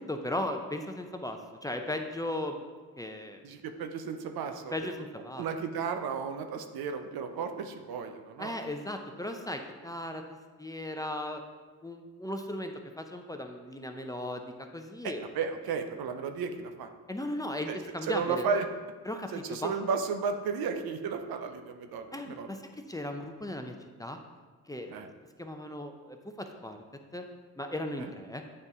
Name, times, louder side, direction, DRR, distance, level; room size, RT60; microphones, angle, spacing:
voice 1, 0.0-2.6 3.0-3.4 4.7-5.4 8.4-11.4 11.8-15.2 17.1-18.5 19.0-19.7 22.1-22.6 22.9-23.7 24.0-24.2 24.7-25.0 25.4-26.8 27.1-27.2 27.6-28.4, left 1 dB, 10° left, 4 dB, 0.6 m, -37 dB
voice 2, 3.4-4.9 5.4-8.6 15.0-16.9 17.7-18.7 19.3-22.5 24.9-25.1 28.0-28.1, right 5 dB, 75° right, 7 dB, 0.7 m, -34 dB
8.8 x 4.0 x 3.6 m, 1.4 s
cardioid pair, 70°, 37 cm